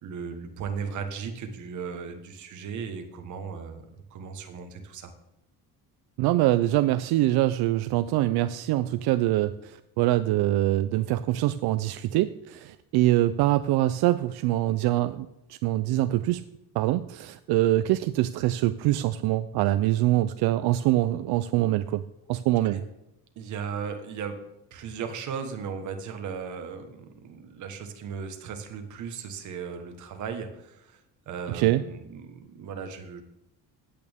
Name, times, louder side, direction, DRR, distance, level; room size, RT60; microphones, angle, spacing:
voice 1, 0.0-5.1 22.6-22.8 23.3-24.4 24.7-33.2, right 6 dB, 50° right, 6 dB, 1.4 m, -36 dB
voice 2, 6.2-16.4 16.8-22.0 22.3-22.8 31.5-31.8, right 15 dB, 80° right, 12 dB, 0.5 m, -24 dB
15.0 x 8.7 x 3.6 m, 0.87 s
cardioid pair, 180°, 38 cm